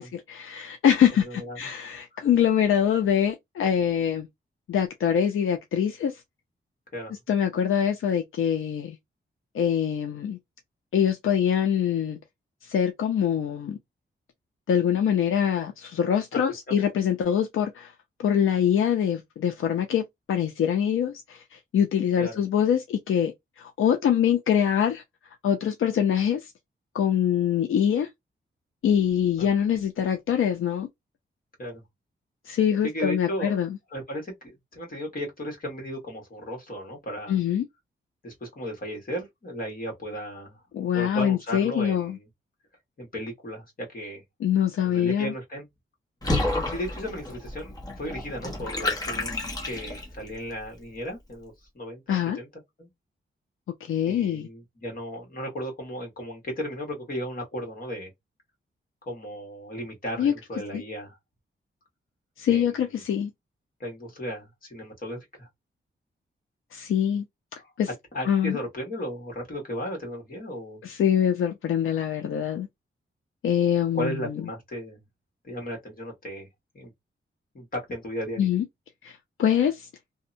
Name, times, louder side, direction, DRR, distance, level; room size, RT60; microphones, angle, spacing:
voice 1, 0.0-4.3 4.7-6.2 7.3-9.0 9.5-10.4 10.9-12.2 12.6-13.8 14.7-17.9 18.2-25.0 25.4-26.5 26.9-28.1 28.8-30.9 32.5-33.8 37.3-37.6 40.7-42.2 44.4-45.3 52.1-52.4 53.8-54.5 60.2-60.3 60.7-60.8 62.4-63.3 66.7-67.2 67.8-67.9 68.3-68.6 70.8-72.7 73.4-74.2 78.4-78.6 79.0-79.9, left 9 dB, 80° left, 0.4 m, -24 dB
voice 2, 1.2-1.6 1.9-2.3 6.9-7.1 16.3-16.4 16.7-16.8 22.2-22.4 29.4-29.5 31.6-31.8 32.8-33.6 33.9-37.4 38.2-40.6 40.9-42.3 43.0-44.2 44.8-45.7 46.4-52.5 52.8-52.9 54.1-58.1 59.0-61.2 62.5-63.0 63.8-65.5 67.6-67.7 68.1-70.8 73.9-75.0 75.4-76.5 76.7-76.9 77.5-78.5, equal, 45° left, 1.3 m, -35 dB
Water / Bathtub (filling or washing), 46.2-50.3, left 2 dB, 20° left, 0.8 m, -30 dB
2.7 x 2.1 x 2.5 m
wide cardioid pair, 180°, 21 cm